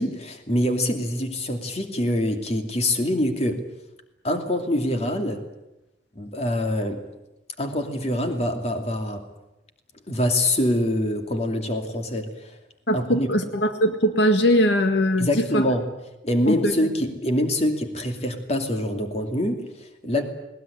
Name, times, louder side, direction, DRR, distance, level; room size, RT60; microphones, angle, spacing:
voice 1, 0.0-3.6 4.2-5.4 6.1-7.0 7.6-9.3 10.1-12.6 12.9-13.3 15.2-15.9 16.2-20.2, left 1 dB, 35° left, 5 dB, 2.6 m, -25 dB
voice 2, 12.9-15.6 16.5-16.7, equal, 70° left, 7 dB, 1.8 m, -21 dB
20.5 x 19.5 x 9.9 m, 0.96 s
head